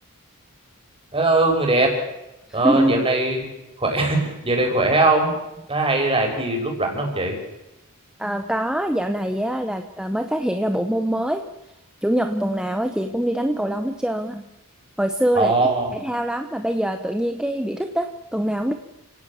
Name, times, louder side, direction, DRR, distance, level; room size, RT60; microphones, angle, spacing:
voice 1, 1.1-1.9 2.5-3.4 3.8-5.3 5.7-7.3 15.3-15.9, right 2 dB, 25° right, 3 dB, 5.9 m, -20 dB
voice 2, 2.6-3.1 8.2-11.4 12.0-14.4 15.0-15.6 15.9-18.7, right 1 dB, 5° right, 6 dB, 1.1 m, -24 dB
30.0 x 17.5 x 7.4 m, 0.93 s
head